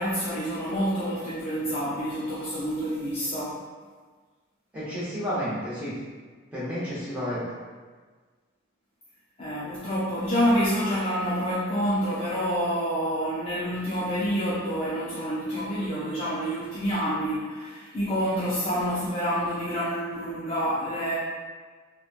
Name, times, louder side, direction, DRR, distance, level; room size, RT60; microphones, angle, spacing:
voice 1, 0.0-3.6 9.4-21.2, equal, 30° left, -8 dB, 0.4 m, -28 dB
voice 2, 4.7-5.9 6.5-7.5, equal, 10° right, -11 dB, 0.8 m, -31 dB
2.9 x 2.2 x 2.4 m, 1.4 s
head